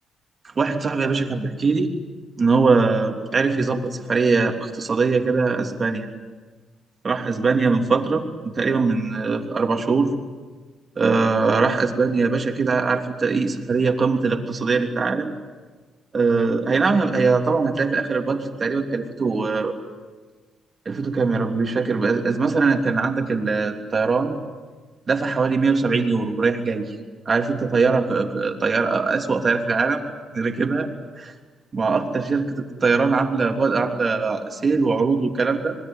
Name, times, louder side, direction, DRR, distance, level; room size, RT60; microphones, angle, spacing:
voice 1, 0.6-1.9 2.4-6.1 7.0-10.1 11.0-15.3 16.1-19.7 20.8-24.4 25.1-26.9 27.2-30.0 30.3-30.9 31.2-31.3 31.7-35.8, right 4 dB, 35° right, 4 dB, 3.2 m, -21 dB
26.5 x 20.5 x 9.3 m, 1.4 s
cardioid pair, 105°, 0 cm